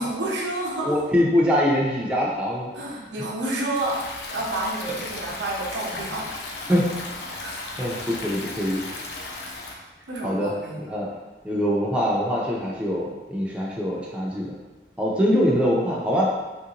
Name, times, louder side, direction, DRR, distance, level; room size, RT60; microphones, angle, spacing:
voice 1, 0.0-0.9 2.7-4.0 4.3-6.3 6.7-6.8 7.4-7.7 9.7-10.9, right 2 dB, 85° right, -3 dB, 0.7 m, -29 dB
voice 2, 0.8-2.7 4.9-5.0 6.7-6.9 7.8-8.9 10.2-10.5 10.8-11.1 11.4-14.5 15.0-16.3, equal, 5° right, -4 dB, 0.4 m, -23 dB
Stream, 3.7-9.7, left 2 dB, 65° left, 0.4 m, -35 dB
3.1 x 2.5 x 2.8 m, 1.1 s
head